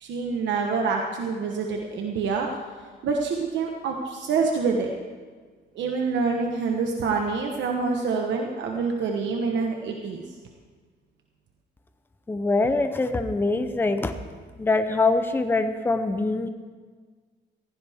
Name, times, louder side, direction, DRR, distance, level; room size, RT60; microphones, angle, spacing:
voice 1, 0.0-2.5 3.0-4.9 5.7-10.2, right 4 dB, 80° right, 2 dB, 1.2 m, -26 dB
voice 2, 12.3-14.1 14.6-16.5, left 3 dB, 10° left, 8 dB, 0.7 m, -23 dB
15.5 x 15.5 x 3.6 m, 1.5 s
cardioid pair, 145°, 19 cm